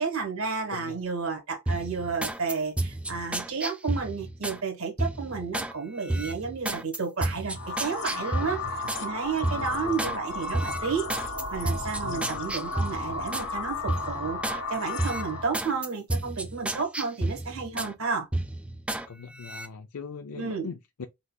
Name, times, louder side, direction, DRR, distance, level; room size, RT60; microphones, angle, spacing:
voice 1, 0.0-8.6 9.0-18.3 20.3-20.7, right 5 dB, 65° right, 1.5 m, -32 dB
sound 1, 1.7-4.6 5.0-5.7 6.1-9.1 9.4-10.2 10.5-13.5 13.9-14.6 15.0-17.9 18.3-19.1 19.4-19.7, right 1 dB, 5° right, 0.4 m, -31 dB
sound 2, 7.5-15.6, left 3 dB, 55° left, 1.2 m, -34 dB
voice 2, 8.4-8.9 9.4-10.1 12.0-12.5 19.1-21.1, left 5 dB, 85° left, 0.5 m, -41 dB
4.6 x 4.0 x 2.3 m
head